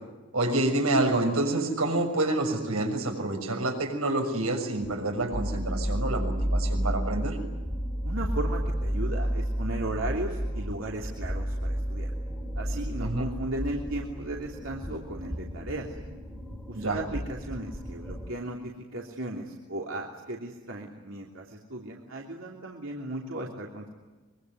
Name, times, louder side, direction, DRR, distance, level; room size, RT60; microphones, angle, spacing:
voice 1, 0.3-7.4 13.0-13.2 16.7-17.0, right 2 dB, 80° right, 3 dB, 6.5 m, -28 dB
sound 1, 4.8-18.3, equal, 5° left, 2.6 m, -32 dB
voice 2, 8.0-12.1 12.6-15.9 16.7-23.9, right 1 dB, 65° right, -1 dB, 3.2 m, -36 dB
25.0 x 23.0 x 9.5 m, 1.2 s
head